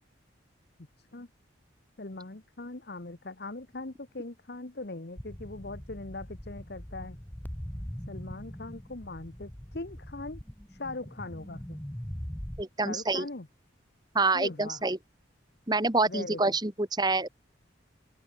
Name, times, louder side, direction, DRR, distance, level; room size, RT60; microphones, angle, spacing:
voice 1, 2.0-7.2 8.1-10.4 10.7-11.8 12.8-13.5 14.3-14.9 16.0-16.6, left 2 dB, 55° left, 1.2 m, -40 dB
sound 1, 5.2-12.6, equal, 10° left, 1.0 m, -41 dB
voice 2, 12.6-13.3 14.1-15.0 15.7-17.3, right 3 dB, 20° right, 1.4 m, -27 dB
open air
head